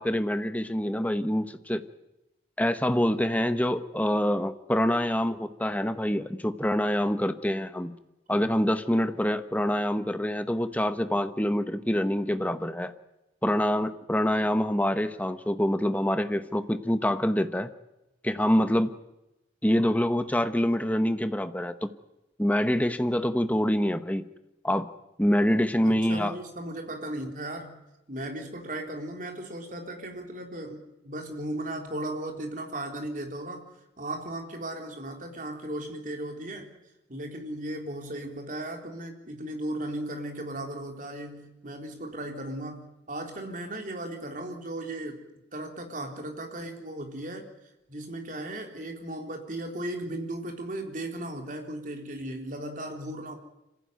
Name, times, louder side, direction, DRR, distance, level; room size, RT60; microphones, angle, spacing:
voice 1, 0.0-1.8 2.6-7.9 8.3-12.9 13.4-17.7 18.2-19.0 19.6-21.9 22.4-24.3 24.6-24.9 25.2-26.3, equal, 10° left, 10 dB, 1.0 m, -26 dB
voice 2, 25.8-27.8 28.1-33.6 34.0-36.7 37.1-45.2 45.5-47.5 47.9-53.4, right 1 dB, 45° right, 3 dB, 3.8 m, -36 dB
26.0 x 15.5 x 9.3 m, 0.94 s
head